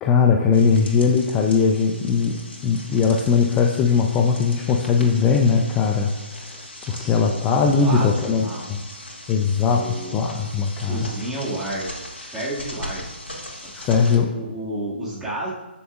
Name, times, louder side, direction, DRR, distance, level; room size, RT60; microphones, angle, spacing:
voice 1, 0.0-6.6 6.9-8.8 9.3-11.1 13.7-14.3, left 5 dB, 15° left, 2 dB, 0.6 m, -20 dB
sound 1, 0.5-14.2, left 1 dB, 85° left, 2.5 m, -39 dB
voice 2, 6.9-7.4 7.8-8.7 9.6-10.2 10.8-13.0 13.6-15.5, right 1 dB, 5° right, -8 dB, 2.3 m, -31 dB
13.5 x 7.0 x 2.5 m, 1.1 s
figure-of-eight pair, 140°, 6 cm